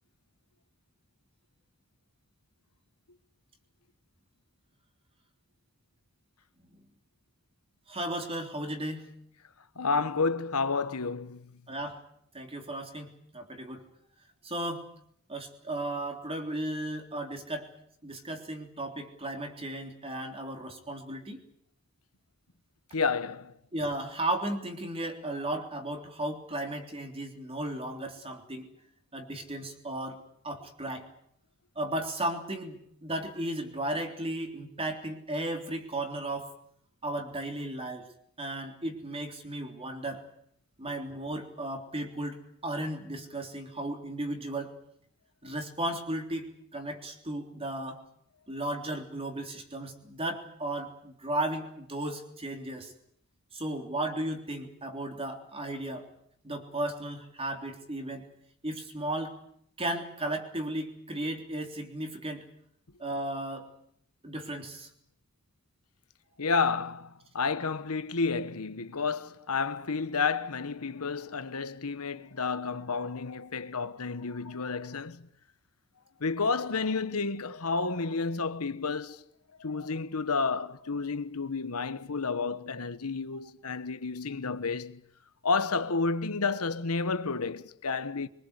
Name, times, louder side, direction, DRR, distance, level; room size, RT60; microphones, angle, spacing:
voice 1, 7.9-9.0 11.7-12.0 12.3-13.9 14.4-14.9 15.3-17.7 18.0-21.4 23.7-28.7 29.1-31.1 31.7-36.5 37.0-38.1 38.4-40.2 40.8-44.7 45.4-48.0 48.5-52.9 53.5-56.1 56.4-58.3 58.6-59.3 59.8-62.5 63.0-63.7 64.2-64.9, right 1 dB, 25° right, 3.4 m, -35 dB
voice 2, 9.8-11.5 22.9-23.5 66.4-75.3 76.2-79.2 79.6-85.0 85.4-88.3, left 4 dB, 85° left, 1.2 m, -31 dB
24.0 x 22.5 x 8.2 m
head